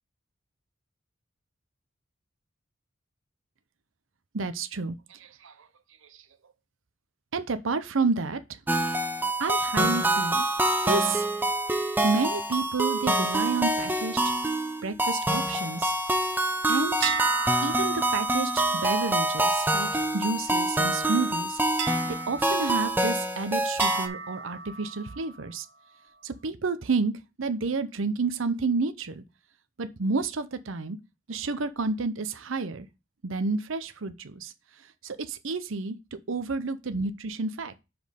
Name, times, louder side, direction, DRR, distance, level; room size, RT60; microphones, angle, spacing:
voice 1, 4.3-5.2 5.4-5.5 7.3-8.4 9.4-10.4 10.8-11.2 12.0-14.2 14.8-15.9 16.7-17.1 17.6-21.6 22.1-25.7 26.2-27.1 27.4-29.2 29.8-31.0 31.3-32.9 33.2-34.5 35.0-36.0 36.3-37.8, right 4 dB, 70° right, 0.7 m, -30 dB
sound 1, 8.7-24.1, right 1 dB, 10° right, 0.7 m, -26 dB
sound 2, 17.0-20.7 21.8-23.3 23.8-25.5, right 5 dB, 55° right, 1.2 m, -35 dB
6.2 x 5.2 x 5.1 m
head